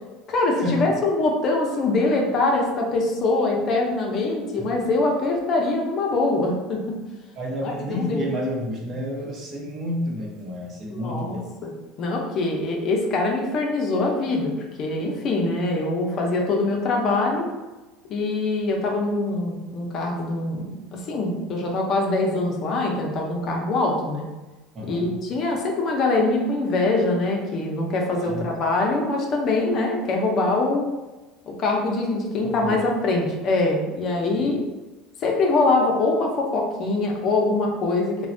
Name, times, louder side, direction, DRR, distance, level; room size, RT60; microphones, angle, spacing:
voice 1, 0.3-6.8 7.6-8.2 10.9-11.7 12.0-14.5 14.8-17.5 18.1-24.2 24.9-30.8 31.5-34.6 35.2-38.3, left 2 dB, 45° left, 0 dB, 0.5 m, -23 dB
voice 2, 7.3-11.5 24.7-25.2 28.2-28.4 32.4-32.8 34.3-34.5, equal, 45° right, -2 dB, 0.7 m, -30 dB
3.1 x 2.1 x 2.5 m, 1.1 s
supercardioid pair, 115°, 0 cm